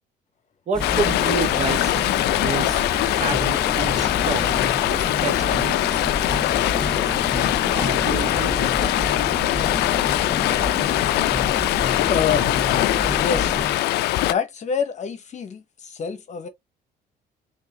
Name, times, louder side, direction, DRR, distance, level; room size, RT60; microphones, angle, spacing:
sound 1, 0.7-13.7, left 1 dB, 5° left, 0.5 m, -31 dB
voice 1, 0.7-2.8 3.2-6.1 7.3-8.9, right 5 dB, 45° right, 1.5 m, -30 dB
Stream, 0.8-14.3, left 16 dB, 80° left, 0.4 m, -22 dB
sound 2, 3.3-13.8, left 3 dB, 25° left, 1.7 m, -35 dB
voice 2, 12.1-12.5 13.2-13.6 14.2-16.5, left 7 dB, 45° left, 1.0 m, -26 dB
3.6 x 3.5 x 2.9 m
cardioid pair, 110°, 17 cm